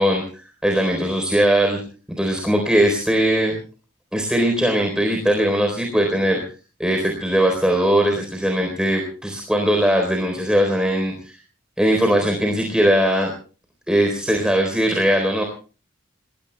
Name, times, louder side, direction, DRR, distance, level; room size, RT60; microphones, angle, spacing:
voice 1, 0.0-1.8 2.2-3.6 4.1-6.4 6.8-11.4 11.8-13.3 13.9-15.4, equal, 5° right, 2 dB, 4.0 m, -20 dB
29.5 x 21.0 x 2.3 m, 0.38 s
head